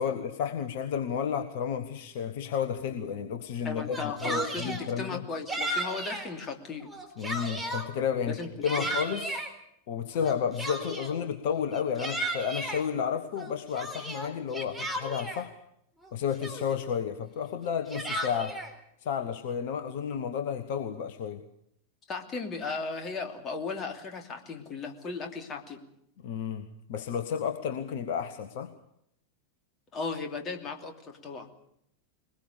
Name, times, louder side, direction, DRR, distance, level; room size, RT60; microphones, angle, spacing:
voice 1, 0.0-5.3 7.2-9.4 9.9-15.5 16.1-18.6 19.0-21.4 26.2-28.7, left 7 dB, 50° left, 8 dB, 1.3 m, -32 dB
voice 2, 3.6-6.9 8.3-8.5 8.8-8.9 22.1-25.8 29.9-31.5, left 3 dB, 25° left, 5 dB, 2.9 m, -36 dB
Yell, 3.8-4.8 5.5-6.3 6.8-7.9 8.4-9.5 10.2-11.2 11.7-12.8 13.4-15.4 16.0-16.1 16.4-16.9 17.6-18.7, right 1 dB, ahead, 3.9 m, -34 dB
21.5 x 20.5 x 6.9 m, 0.75 s
figure-of-eight pair, 90°, 0 cm